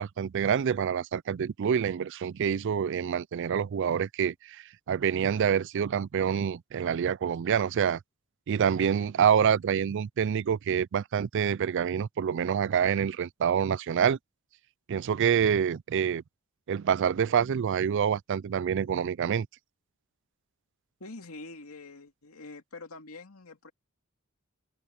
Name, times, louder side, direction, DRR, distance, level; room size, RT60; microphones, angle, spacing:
voice 1, 0.0-8.0 8.5-14.2 14.9-16.2 16.7-19.5, right 7 dB, 60° right, 0.4 m, -27 dB
voice 2, 21.0-23.7, left 3 dB, 85° left, 2.5 m, -45 dB
open air
head